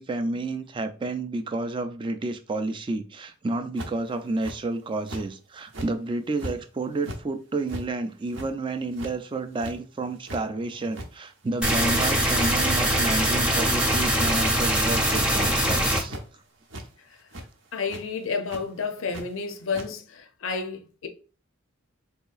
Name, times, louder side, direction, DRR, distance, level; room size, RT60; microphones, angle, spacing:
voice 1, 0.0-16.2, right 2 dB, 25° right, 0.3 m, -30 dB
sound 1, 3.8-4.1 4.4-4.6 5.1-5.2 5.7-5.9 6.4-6.5 6.9-7.2 7.7-7.9 8.3-8.5 8.9-9.1 9.6-9.8 10.1-10.4 10.9-11.1 11.5-12.0 12.2-12.4 12.9-13.0 13.5-13.7 14.1-14.4 14.8-15.1 15.3-15.6 16.1-16.2 16.7-16.8 17.3-17.5 17.9-18.0 18.5-18.6 19.1-19.2 19.7-19.9, right 1 dB, 60° right, 0.7 m, -37 dB
sound 2, 11.6-16.0, equal, 5° right, 0.7 m, -22 dB
voice 2, 17.7-21.1, left 5 dB, 70° left, 0.5 m, -31 dB
3.9 x 2.8 x 2.4 m
head